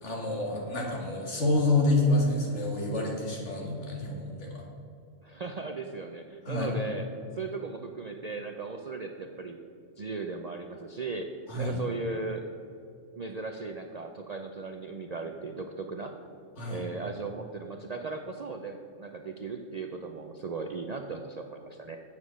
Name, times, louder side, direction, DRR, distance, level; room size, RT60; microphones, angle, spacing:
voice 1, 0.0-4.6 6.5-6.7 11.5-11.8 16.6-16.9, left 2 dB, 70° left, -1 dB, 2.1 m, -28 dB
voice 2, 5.2-7.1 7.4-9.6 10.0-11.3 11.5-12.4 13.2-16.1 16.7-22.0, right 4 dB, 50° right, 4 dB, 0.5 m, -37 dB
8.2 x 7.2 x 6.2 m, 2.6 s
omnidirectional pair, 1.3 m